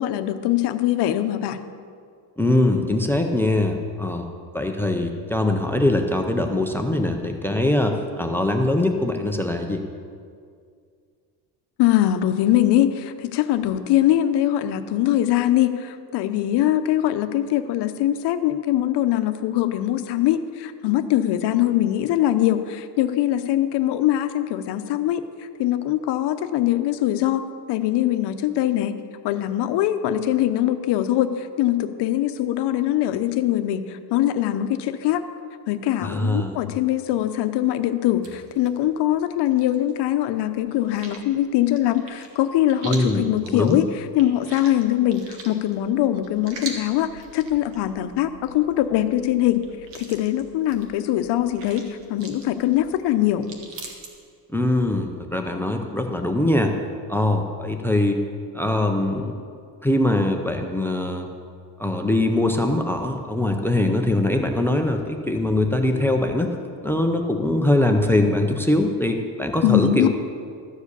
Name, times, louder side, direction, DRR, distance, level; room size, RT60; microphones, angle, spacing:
voice 1, 0.0-1.6 11.8-25.2 25.6-27.4 27.7-29.0 29.2-35.2 35.7-49.6 49.9-53.5 69.6-70.1, left 13 dB, 65° left, 9 dB, 0.8 m, -22 dB
voice 2, 2.4-4.3 4.5-9.8 36.0-36.6 42.8-43.8 54.5-56.8 57.1-58.2 58.5-59.3 59.8-61.3 61.8-66.5 66.8-70.1, left 1 dB, 5° left, 5 dB, 0.4 m, -22 dB
sound 1, 38.2-40.0 40.3-54.1, right 3 dB, 75° right, 1.8 m, -43 dB
13.0 x 4.9 x 8.1 m, 2.2 s
cardioid pair, 165°, 43 cm